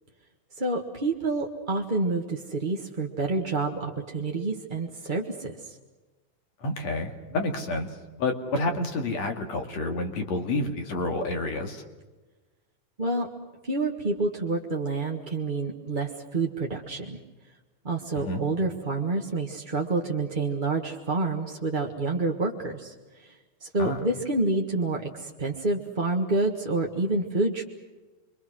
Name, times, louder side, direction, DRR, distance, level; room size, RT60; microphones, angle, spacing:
voice 1, 0.6-5.8 13.0-13.3 13.6-17.2 17.8-22.9 23.2-23.3 23.6-27.6, right 3 dB, 25° right, 0 dB, 1.1 m, -28 dB
voice 2, 6.6-7.9 8.2-11.8 18.1-18.4 23.8-24.0, left 2 dB, 60° left, 4 dB, 3.4 m, -29 dB
28.5 x 23.5 x 6.3 m, 1.2 s
omnidirectional pair, 3.5 m